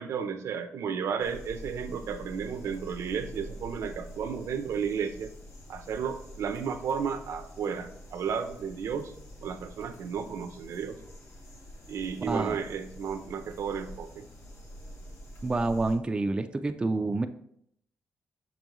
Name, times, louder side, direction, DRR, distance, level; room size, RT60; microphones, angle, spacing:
voice 1, 0.0-5.3 5.7-9.1 9.4-11.0 11.9-14.2, right 7 dB, 75° right, 8 dB, 0.7 m, -33 dB
sound 1, 1.2-16.0, equal, 70° left, 2.0 m, -46 dB
voice 2, 12.2-12.6 15.4-17.3, right 2 dB, 20° right, 7 dB, 0.4 m, -28 dB
6.1 x 5.3 x 3.1 m, 0.71 s
cardioid pair, 110°, 5 cm